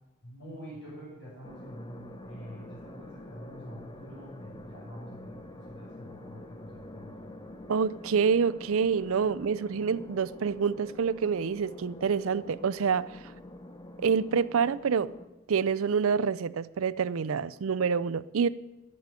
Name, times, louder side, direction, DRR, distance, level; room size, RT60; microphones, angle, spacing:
voice 1, 0.2-7.3, equal, 55° left, 6.2 m, -46 dB
sound 1, 1.4-15.3, left 1 dB, 20° left, 0.7 m, -47 dB
voice 2, 7.7-13.2 14.0-15.1 15.5-18.5, right 6 dB, 65° right, 0.4 m, -27 dB
10.5 x 8.5 x 9.1 m
head